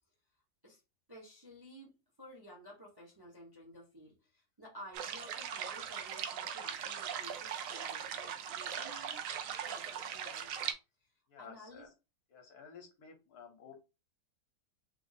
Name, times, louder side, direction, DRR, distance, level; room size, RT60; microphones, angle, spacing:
voice 1, 1.1-10.7 11.0-11.1 11.4-11.9, equal, 20° right, 0.7 m, -54 dB
sound 1, 4.9-10.7, right 8 dB, 70° right, 0.8 m, -40 dB
voice 2, 11.3-11.9 12.3-13.8, left 6 dB, 65° left, 1.3 m, -53 dB
3.3 x 2.0 x 4.0 m
omnidirectional pair, 1.8 m